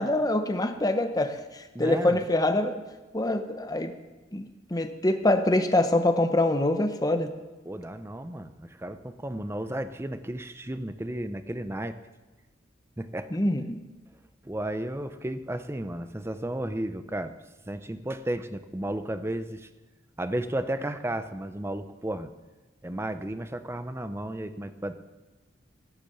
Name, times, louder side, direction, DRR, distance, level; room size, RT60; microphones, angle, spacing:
voice 1, 0.0-2.8 3.1-3.9 4.3-7.3 13.3-13.8, left 1 dB, 20° left, 7 dB, 0.9 m, -25 dB
voice 2, 1.7-2.2 7.7-12.0 13.0-13.3 14.4-17.3 17.7-19.7 20.2-22.3 22.8-24.9, right 1 dB, 15° right, 10 dB, 0.6 m, -33 dB
17.0 x 7.0 x 7.0 m, 1.2 s
head